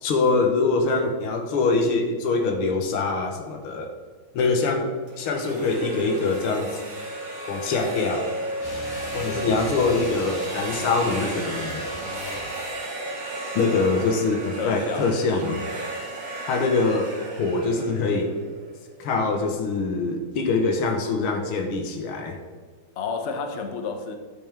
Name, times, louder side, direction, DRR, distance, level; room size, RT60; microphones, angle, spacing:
voice 1, 0.0-3.9 4.3-7.1 7.5-8.3 9.1-11.8 13.6-15.6 16.5-18.4 19.0-22.4, left 3 dB, 90° left, 4 dB, 1.8 m, -24 dB
sound 1, 5.1-18.9, right 2 dB, 70° right, 2.4 m, -34 dB
sound 2, 8.6-12.6, left 1 dB, 30° left, 0.4 m, -38 dB
voice 2, 14.6-15.1 15.4-15.6 23.0-24.1, left 5 dB, 60° left, 5 dB, 0.7 m, -30 dB
10.5 x 6.0 x 3.5 m, 1.5 s
omnidirectional pair, 2.3 m